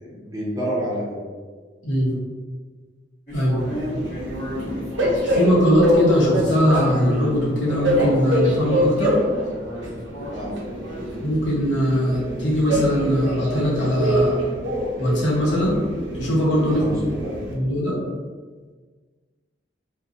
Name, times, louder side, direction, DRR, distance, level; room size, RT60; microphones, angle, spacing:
voice 1, 0.0-1.2 10.3-10.6 16.7-17.0 17.2-17.3, equal, 20° right, -6 dB, 0.7 m, -28 dB
sound 1, 3.3-8.6 9.2-11.5, right 1 dB, 40° left, 0.9 m, -34 dB
Train, 3.6-17.5, equal, 85° right, 0.5 m, -25 dB
voice 2, 5.2-9.2 11.2-14.4 15.0-15.8 16.1-16.8 17.5-18.0, equal, 90° left, -5 dB, 0.8 m, -20 dB
2.5 x 2.1 x 2.4 m, 1.5 s
head